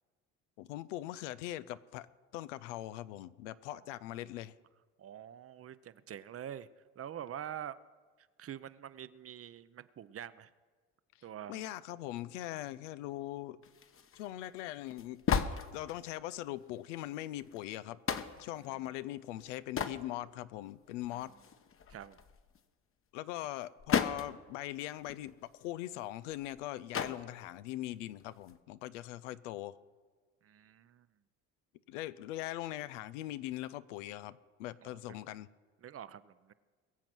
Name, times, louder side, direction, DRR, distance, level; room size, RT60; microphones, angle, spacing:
voice 1, 0.6-2.1 2.3-4.5 11.5-13.6 14.1-15.2 15.7-18.0 18.4-21.3 23.1-29.8 31.9-35.5, left 15 dB, 85° left, 15 dB, 0.7 m, -41 dB
voice 2, 5.0-6.7 7.0-7.8 8.4-10.5 11.2-11.6 21.9-22.2 30.4-31.1 34.8-35.2 35.8-36.5, right 10 dB, 40° right, 15 dB, 0.7 m, -45 dB
sound 1, 13.6-16.3 16.8-16.9 17.3-17.6 18.1-18.5 19.3-20.0 20.5-20.6 21.0-22.6 23.4-24.4 24.7-24.8 25.0-26.6 26.9-27.2 28.2-28.6, left 7 dB, 35° left, 1.1 m, -36 dB
22.0 x 7.4 x 6.1 m, 1.5 s
hypercardioid pair, 70°, 36 cm